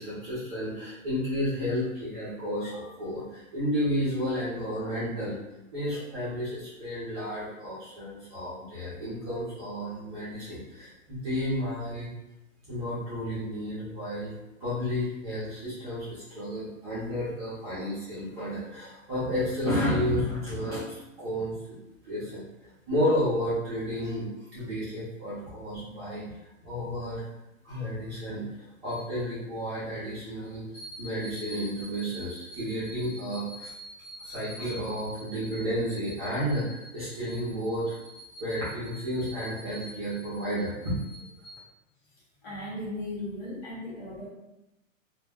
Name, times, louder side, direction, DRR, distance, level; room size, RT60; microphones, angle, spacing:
voice 1, 0.0-5.4 5.7-12.1 12.7-14.3 14.6-21.5 22.0-26.2 26.6-27.2 27.6-41.5, equal, 20° right, -11 dB, 0.5 m, -32 dB
voice 2, 42.4-44.3, left 1 dB, 30° left, -6 dB, 0.9 m, -36 dB
2.2 x 2.1 x 3.4 m, 0.95 s
hypercardioid pair, 165°, 41 cm